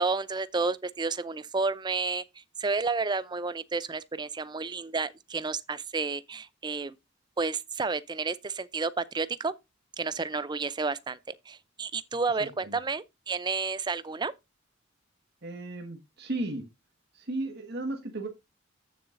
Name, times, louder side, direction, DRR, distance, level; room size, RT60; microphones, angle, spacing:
voice 1, 0.0-7.0 7.4-9.5 10.0-11.2 11.5-14.3, right 4 dB, 20° right, 0.5 m, -31 dB
voice 2, 12.4-12.8 15.4-16.6 17.1-18.3, right 2 dB, 55° right, 1.6 m, -35 dB
14.0 x 7.1 x 2.6 m
head